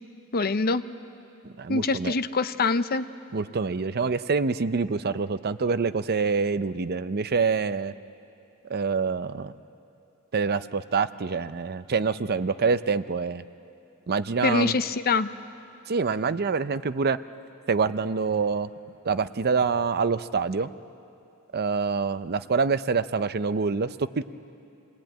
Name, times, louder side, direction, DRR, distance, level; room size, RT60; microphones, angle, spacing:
voice 1, 0.3-0.8 1.7-3.1 14.4-15.3, left 4 dB, 45° left, 12 dB, 0.7 m, -24 dB
voice 2, 1.4-2.1 3.3-7.9 8.7-9.5 10.3-13.4 14.1-14.7 15.9-17.2 17.7-18.7 19.0-20.7 21.5-24.2, right 5 dB, 45° right, 13 dB, 0.6 m, -26 dB
28.0 x 19.5 x 9.0 m, 2.8 s
head